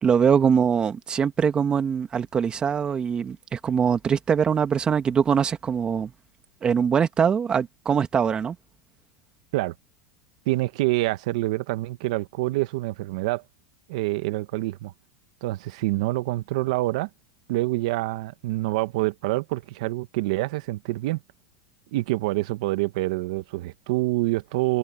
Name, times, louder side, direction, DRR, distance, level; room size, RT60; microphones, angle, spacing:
voice 1, 0.0-6.1 6.6-8.6, right 7 dB, 25° right, 1.8 m, -22 dB
voice 2, 10.4-13.4 13.9-14.9 15.4-17.1 17.5-21.2 21.9-24.8, right 19 dB, 70° right, 1.5 m, -26 dB
supercardioid pair, 115°, 4 cm